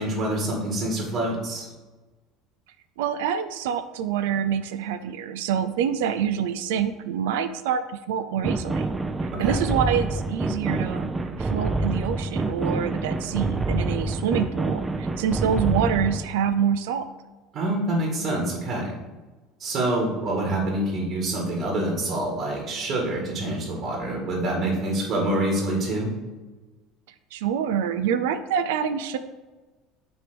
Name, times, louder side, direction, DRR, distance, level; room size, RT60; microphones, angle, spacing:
voice 1, 0.0-1.7 9.3-9.6 17.5-19.0 19.6-26.1, right 1 dB, 55° right, -2 dB, 2.0 m, -26 dB
voice 2, 3.0-8.9 9.4-11.1 11.4-17.0 27.3-29.2, right 8 dB, 85° right, 10 dB, 0.4 m, -26 dB
sound 1, 8.4-16.3, right 2 dB, 20° right, 0.6 m, -27 dB
6.0 x 3.5 x 6.0 m, 1.2 s
supercardioid pair, 100°, 0 cm